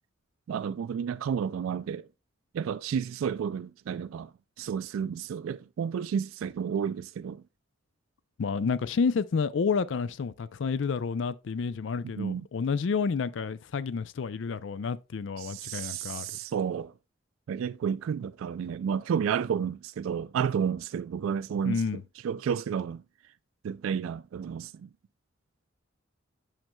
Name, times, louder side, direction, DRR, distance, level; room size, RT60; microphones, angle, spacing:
voice 1, 0.5-2.0 2.5-4.3 4.6-7.4 12.2-12.5 15.4-16.9 17.5-21.8 22.2-23.0 23.6-24.9, right 7 dB, 85° right, 0.3 m, -31 dB
voice 2, 8.4-16.3 21.6-22.0, left 5 dB, 65° left, 0.4 m, -30 dB
8.9 x 6.5 x 2.2 m
head